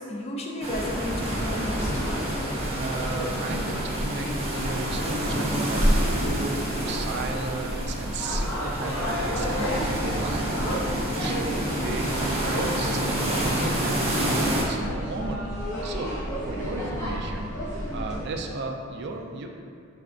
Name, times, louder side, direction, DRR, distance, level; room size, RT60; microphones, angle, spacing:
voice 1, 0.0-2.0, left 1 dB, 30° left, -1 dB, 0.4 m, -33 dB
sound 1, 0.6-14.6, right 1 dB, 30° right, 0.7 m, -29 dB
sound 2, 0.7-18.2, equal, 15° left, 1.1 m, -31 dB
voice 2, 2.7-10.5 10.9-15.4 15.8-17.5 17.9-19.5, right 3 dB, 50° right, 3 dB, 0.3 m, -34 dB
4.7 x 3.3 x 2.4 m, 2.4 s
head